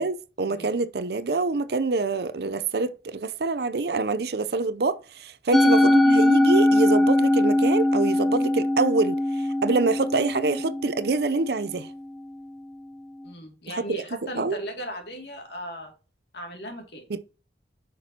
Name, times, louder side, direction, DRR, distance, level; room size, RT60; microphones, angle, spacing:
voice 1, 0.0-9.2 9.6-11.9 13.7-14.0 14.4-14.6 17.1-17.2, right 3 dB, 65° right, 0.6 m, -26 dB
Musical instrument, 5.5-11.9, left 1 dB, ahead, 0.5 m, -21 dB
voice 2, 13.2-15.9 16.3-17.1, equal, 70° left, 2.4 m, -37 dB
9.3 x 6.0 x 2.8 m
head